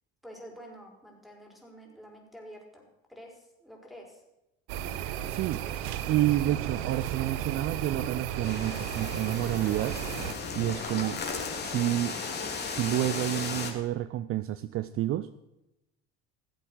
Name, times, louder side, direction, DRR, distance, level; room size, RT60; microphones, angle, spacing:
voice 1, 0.2-4.2, equal, ahead, 1 dB, 4.5 m, -48 dB
sound 1, 4.7-10.3, right 10 dB, 70° right, 1.0 m, -34 dB
voice 2, 5.3-5.6 6.1-10.0 10.6-11.2 11.6-12.2 12.6-15.3, right 14 dB, 45° right, 14 dB, 0.5 m, -29 dB
sound 2, 8.4-13.7, left 4 dB, 30° left, 3.0 m, -35 dB
17.0 x 7.8 x 6.2 m, 0.92 s
hypercardioid pair, 75°, 32 cm